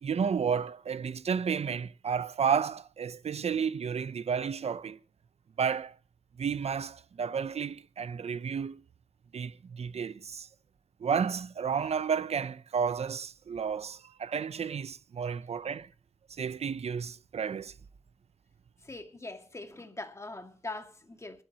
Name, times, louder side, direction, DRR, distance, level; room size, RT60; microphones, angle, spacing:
voice 1, 0.0-5.0 5.6-5.9 6.4-8.8 9.3-10.5 11.0-15.9 16.3-17.7, right 6 dB, 75° right, 0.7 m, -32 dB
voice 2, 18.8-21.4, left 2 dB, 25° left, 2.0 m, -42 dB
23.0 x 12.0 x 2.9 m
wide cardioid pair, 105°, 11 cm